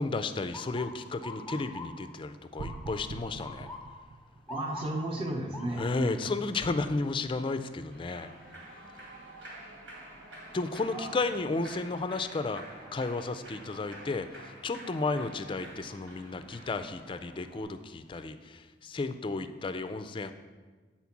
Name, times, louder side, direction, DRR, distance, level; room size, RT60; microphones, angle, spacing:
voice 1, 0.0-3.7 5.7-8.3 10.5-12.6 12.9-20.3, left 3 dB, 25° left, 10 dB, 0.4 m, -33 dB
Motor vehicle (road) / Siren, 0.5-12.4 12.9-13.3 14.1-14.4 16.3-16.5 17.0-17.1 17.5-18.2, left 2 dB, ahead, 1.0 m, -48 dB
sound 1, 2.6-4.7, right 3 dB, 70° right, 0.4 m, -43 dB
voice 2, 4.5-6.3 10.9-11.1, right 1 dB, 30° right, 0 dB, 0.8 m, -34 dB
Human voice / Clapping / Cheering, 7.9-17.6, right 1 dB, 90° right, 2.2 m, -49 dB
8.3 x 4.4 x 5.9 m, 1.4 s
head